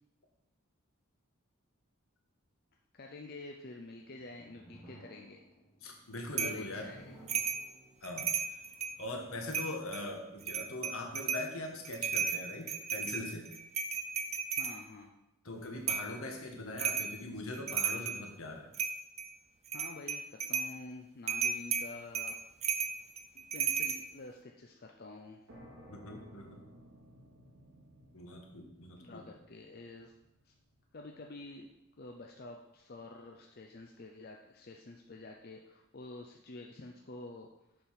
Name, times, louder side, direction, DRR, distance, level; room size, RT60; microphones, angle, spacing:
voice 1, 2.9-5.4 6.4-7.1 14.6-15.1 19.7-22.4 23.3-25.4 28.9-30.1 30.5-30.6 30.9-31.7 32.0-37.5, left 2 dB, 45° left, 2 dB, 0.6 m, -48 dB
sound 1, 4.0-11.0, right 1 dB, 20° left, 2.3 m, -59 dB
voice 2, 5.8-6.9 8.0-8.3 9.0-13.5 15.4-18.7 25.9-26.6 28.1-29.3, left 1 dB, 70° left, 2 dB, 1.4 m, -42 dB
sound 2, 6.4-6.6 7.3-7.7 8.0-9.0 9.5-10.0 10.4-11.5 11.9-14.8 15.9-16.1 16.8-17.2 17.5-18.2 18.7-19.3 19.7-20.7 21.3-24.0, right 6 dB, 30° right, 0.4 m, -34 dB
sound 3, 25.5-32.9, equal, 70° right, 2.3 m, -58 dB
7.0 x 5.2 x 5.8 m, 0.88 s
head